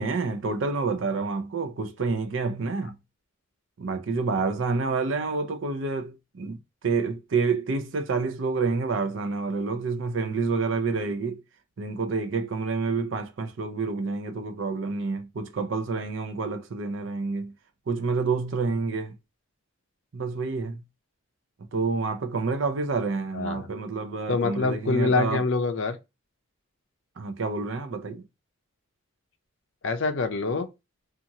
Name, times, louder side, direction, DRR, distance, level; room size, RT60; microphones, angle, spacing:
voice 1, 0.0-2.9 3.8-6.6 6.8-11.4 11.8-17.5 17.9-19.1 20.1-20.8 21.7-25.4 27.2-28.2, right 4 dB, 60° right, 0.5 m, -28 dB
voice 2, 23.3-23.7 24.3-26.0 29.8-30.7, left 3 dB, 60° left, 0.5 m, -25 dB
2.8 x 2.4 x 2.6 m
head